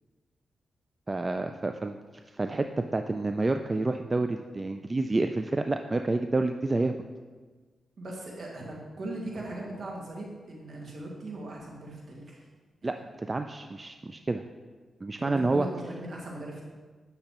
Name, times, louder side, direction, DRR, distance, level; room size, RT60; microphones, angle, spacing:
voice 1, 1.1-2.0 2.3-2.7 2.9-7.0 12.8-14.4 15.0-15.7, right 2 dB, 30° right, 7 dB, 0.3 m, -29 dB
voice 2, 8.0-12.4 12.8-13.0 15.2-16.7, right 1 dB, 65° right, -3 dB, 1.9 m, -39 dB
8.4 x 6.6 x 3.0 m, 1.4 s
cardioid pair, 55°, 0 cm